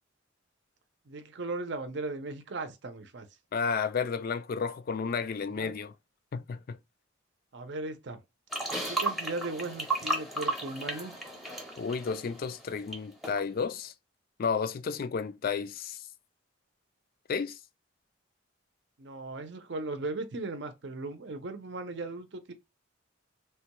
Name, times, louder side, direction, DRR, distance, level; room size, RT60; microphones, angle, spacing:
voice 1, 1.1-3.3 5.5-5.8 7.5-8.2 8.9-11.1 19.0-22.5, right 2 dB, 60° right, 0.6 m, -37 dB
voice 2, 3.5-5.9 6.3-6.8 11.8-13.9 14.4-16.0 17.3-17.6, left 5 dB, 45° left, 0.3 m, -32 dB
sound 1, 8.5-13.0 13.2-13.4, right 2 dB, ahead, 0.6 m, -34 dB
3.3 x 2.2 x 2.9 m
head